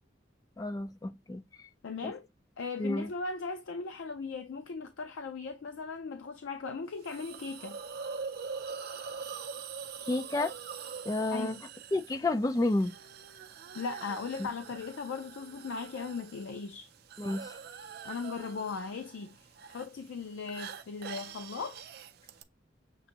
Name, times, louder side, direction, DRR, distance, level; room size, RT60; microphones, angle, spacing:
voice 1, 0.6-1.4 2.0-2.1 2.8-3.1 10.1-10.5 11.1-11.6 11.9-12.9 17.2-17.5, left 2 dB, 20° left, 0.4 m, -30 dB
voice 2, 1.8-2.2 2.6-7.8 11.3-11.6 13.7-16.9 18.0-21.9, left 4 dB, 85° left, 0.4 m, -38 dB
Hiss, 7.0-22.4, right 6 dB, 55° right, 0.4 m, -44 dB
6.7 x 2.6 x 2.8 m
head